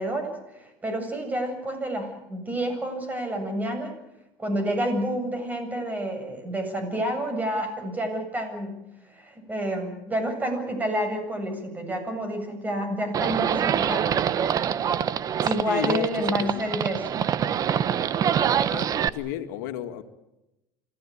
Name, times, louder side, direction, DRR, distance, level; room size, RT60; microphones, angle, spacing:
voice 1, 0.0-3.9 4.4-8.8 9.1-14.1 15.4-17.2, right 1 dB, 15° right, 6 dB, 7.7 m, -29 dB
Livestock farm animals working animals, 13.1-19.1, right 9 dB, 40° right, 1.1 m, -25 dB
voice 2, 15.4-16.6 18.7-20.0, left 12 dB, 85° left, 7 dB, 2.1 m, -33 dB
27.0 x 16.5 x 8.7 m, 0.92 s
supercardioid pair, 120°, 10 cm